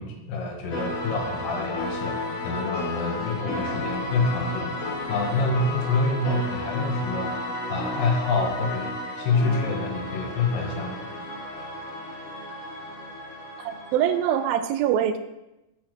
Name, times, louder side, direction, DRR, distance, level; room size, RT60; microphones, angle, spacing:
voice 1, 0.0-4.7 5.1-7.3 7.7-11.0, left 3 dB, 75° left, 1 dB, 2.8 m, -27 dB
sound 1, 0.7-14.5, left 2 dB, 50° left, 2.5 m, -32 dB
voice 2, 13.6-15.2, right 9 dB, 85° right, 10 dB, 2.4 m, -24 dB
10.5 x 4.2 x 4.4 m, 0.96 s
omnidirectional pair, 4.2 m